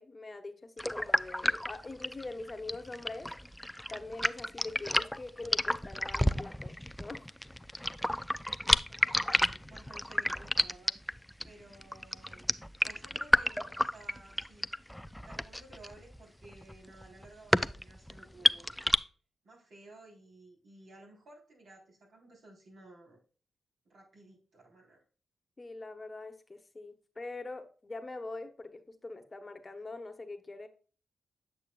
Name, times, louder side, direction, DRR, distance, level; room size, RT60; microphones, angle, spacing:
voice 1, 0.0-3.3 3.9-7.3 25.6-30.7, left 2 dB, 35° left, 1.1 m, -43 dB
sound 1, 0.8-19.0, left 1 dB, 5° left, 0.4 m, -31 dB
voice 2, 8.9-11.0 11.4-14.7 15.2-18.7 19.4-23.2 23.9-25.0, right 2 dB, 70° right, 3.8 m, -55 dB
8.4 x 6.3 x 2.3 m
supercardioid pair, 40°, 0 cm